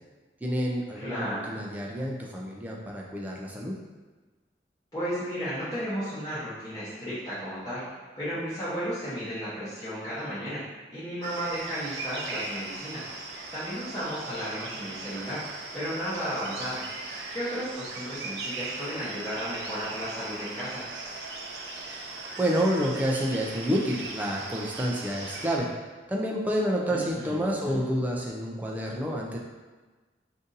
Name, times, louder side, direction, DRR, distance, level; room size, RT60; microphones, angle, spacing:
voice 1, 0.4-3.7 22.4-25.7 26.1-29.4, equal, 10° right, -2 dB, 0.3 m, -29 dB
voice 2, 1.0-1.6 4.9-7.8 8.2-10.6 10.9-13.1 13.5-15.4 15.7-16.8 17.3-20.8 26.9-27.8, equal, 20° left, -13 dB, 0.8 m, -34 dB
sound 1, 11.2-25.6, right 3 dB, 80° right, 0.4 m, -38 dB
2.6 x 2.6 x 3.8 m, 1.3 s
head